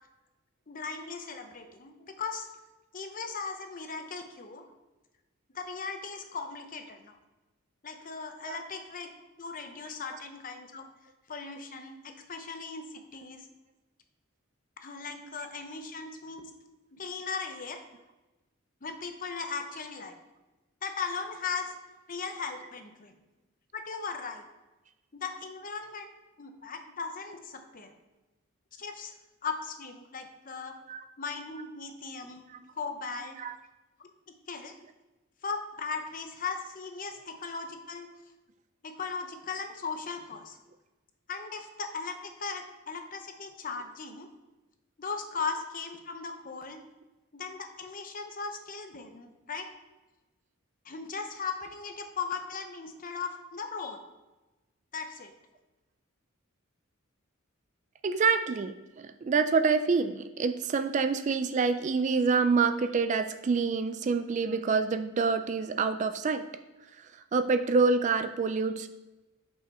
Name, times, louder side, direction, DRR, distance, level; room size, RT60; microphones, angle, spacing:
voice 1, 0.7-2.5 2.9-4.6 5.5-7.2 7.8-9.1 9.4-10.9 11.3-13.5 14.8-16.5 16.9-17.8 18.8-20.2 20.8-21.7 22.1-23.1 23.7-24.4 25.1-26.1 26.4-27.9 28.8-29.1 29.4-30.7 31.2-32.4 32.8-33.4 34.0-34.1 34.5-34.7 35.4-38.1 38.8-40.6 41.3-44.3 45.0-46.8 47.3-49.7 50.8-54.0 54.9-55.3, left 5 dB, 40° left, 6 dB, 0.8 m, -38 dB
voice 2, 58.0-66.4 67.0-68.9, right 4 dB, 35° right, 10 dB, 0.3 m, -27 dB
6.5 x 5.6 x 4.2 m, 1.1 s
head